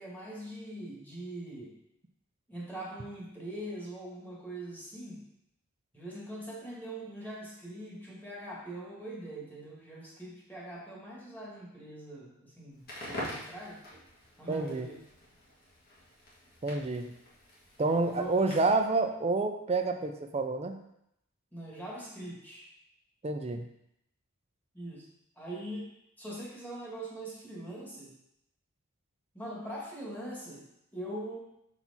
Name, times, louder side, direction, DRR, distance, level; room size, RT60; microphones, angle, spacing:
voice 1, 0.0-1.7 2.5-5.2 5.9-13.8 14.4-15.0 18.0-18.6 21.5-22.7 24.7-25.1 25.4-25.9 26.2-28.1 29.3-31.4, right 1 dB, 10° left, -5 dB, 1.6 m, -42 dB
Crackle, 12.7-18.9, equal, 45° left, 1.5 m, -45 dB
voice 2, 14.5-14.9 16.6-17.1 17.8-20.8 23.2-23.6, right 3 dB, 30° right, 6 dB, 0.4 m, -29 dB
5.8 x 4.3 x 4.1 m, 0.80 s
head